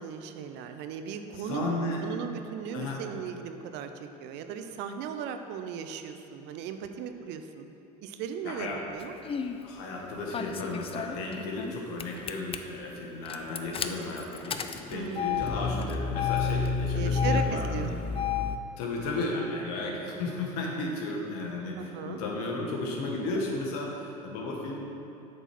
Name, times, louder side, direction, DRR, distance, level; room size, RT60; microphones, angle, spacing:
voice 1, 0.0-7.7 8.0-9.1 14.9-15.5 16.9-17.9 21.8-22.2, right 7 dB, 60° right, 7 dB, 0.6 m, -37 dB
voice 2, 1.4-2.1 2.7-3.0 8.4-8.8 9.6-18.0 18.8-24.8, left 2 dB, 70° left, -1 dB, 1.5 m, -34 dB
Engine starting, 9.0-9.6 10.3-11.7 12.0-12.6 13.2-18.6, left 6 dB, 25° left, 0.5 m, -30 dB
8.3 x 4.5 x 6.0 m, 2.8 s
hypercardioid pair, 75°, 20 cm